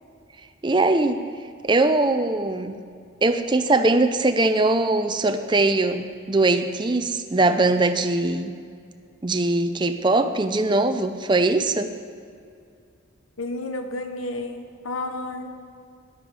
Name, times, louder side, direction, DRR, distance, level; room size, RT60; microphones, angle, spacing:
voice 1, 0.6-1.2 1.6-2.8 3.2-8.6 9.2-11.9, right 2 dB, 20° right, 8 dB, 0.5 m, -21 dB
voice 2, 13.4-15.5, left 2 dB, 85° left, 6 dB, 1.0 m, -31 dB
14.0 x 10.5 x 4.9 m, 2.3 s
head